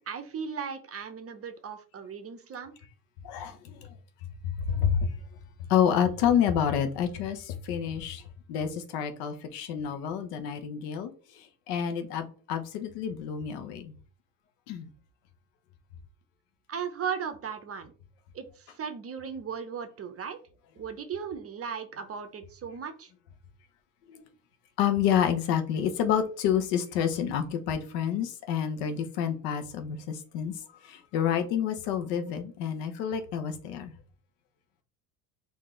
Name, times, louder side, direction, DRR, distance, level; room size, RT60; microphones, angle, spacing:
voice 1, 0.0-2.7 16.7-17.9 18.3-20.4 20.8-23.1, right 7 dB, 30° right, 8 dB, 0.8 m, -37 dB
voice 2, 3.2-3.9 4.4-5.2 5.7-8.2 8.5-14.0 14.7-14.9 24.1-24.2 24.8-30.5 30.8-33.9, left 8 dB, 75° left, 8 dB, 1.0 m, -29 dB
4.6 x 2.8 x 3.7 m, 0.40 s
hypercardioid pair, 80°, 49 cm